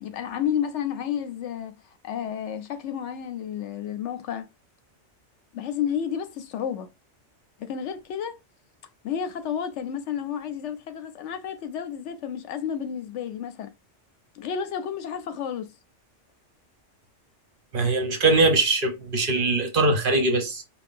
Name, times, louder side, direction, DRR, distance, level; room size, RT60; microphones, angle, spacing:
voice 1, 0.0-4.5 5.5-6.9 7.6-8.4 9.0-13.7 14.3-15.7, left 8 dB, 75° left, 0.9 m, -31 dB
voice 2, 17.7-20.6, right 2 dB, 50° right, 0.9 m, -22 dB
5.4 x 2.3 x 2.5 m
omnidirectional pair, 1.3 m